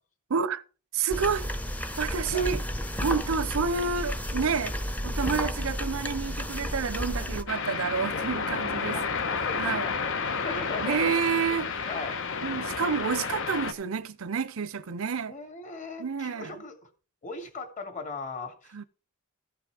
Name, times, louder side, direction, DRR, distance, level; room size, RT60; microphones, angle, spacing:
voice 1, 0.3-0.6 0.9-1.5 2.0-2.6 3.0-4.7 5.0-9.0 9.5-9.9 10.8-11.9 12.4-15.4 16.0-16.6 18.7-18.8, right 5 dB, 70° right, 0.6 m, -29 dB
sound 1, 1.1-7.4, equal, 5° left, 0.8 m, -32 dB
sound 2, 7.5-13.7, left 5 dB, 60° left, 1.2 m, -31 dB
voice 2, 8.9-11.1 11.9-12.5 15.3-16.9 17.2-18.9, left 3 dB, 35° left, 2.3 m, -39 dB
14.5 x 5.9 x 4.9 m
head